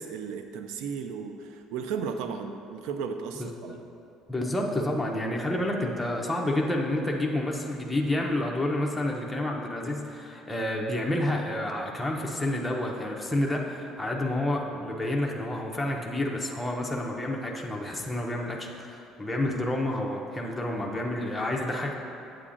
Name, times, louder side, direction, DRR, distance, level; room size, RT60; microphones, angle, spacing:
voice 1, 0.0-3.8, right 6 dB, 80° right, 7 dB, 0.3 m, -35 dB
voice 2, 4.3-21.9, left 1 dB, 5° left, -2 dB, 0.5 m, -29 dB
8.4 x 7.5 x 2.5 m, 2.7 s
cardioid pair, 165°, 0 cm